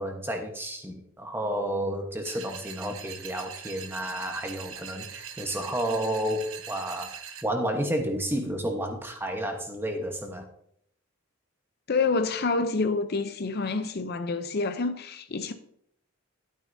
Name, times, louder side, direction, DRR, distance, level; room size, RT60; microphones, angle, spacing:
voice 1, 0.0-7.1 7.4-10.5, right 1 dB, 10° right, 1.1 m, -31 dB
sound 1, 2.2-7.4, right 8 dB, 75° right, 0.9 m, -42 dB
voice 2, 11.9-15.5, left 4 dB, 50° left, 0.6 m, -27 dB
12.5 x 9.1 x 2.7 m
head